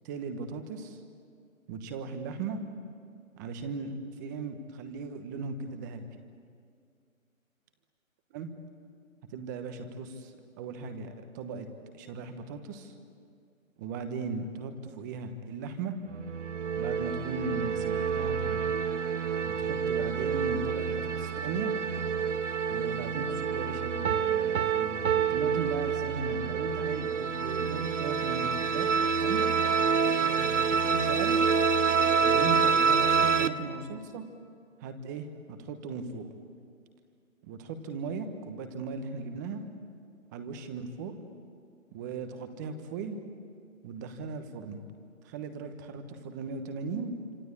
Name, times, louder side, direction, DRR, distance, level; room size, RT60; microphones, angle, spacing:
voice 1, 0.0-1.0 1.7-2.6 3.4-6.1 8.3-8.5 9.3-11.7 11.9-12.9 13.8-15.9 16.8-18.6 19.4-21.7 22.7-28.9 29.2-29.5 30.0-31.5 32.2-34.2 34.8-36.3 37.4-39.7 40.3-41.1 41.9-43.2 43.8-44.8 45.2-47.1, right 4 dB, 15° right, 8 dB, 1.1 m, -37 dB
sound 1, 16.1-33.5, right 6 dB, 60° right, 1.3 m, -28 dB
Piano, 24.0-26.6, right 8 dB, 85° right, 0.7 m, -31 dB
26.5 x 25.5 x 8.6 m, 2.2 s
hypercardioid pair, 155°, 41 cm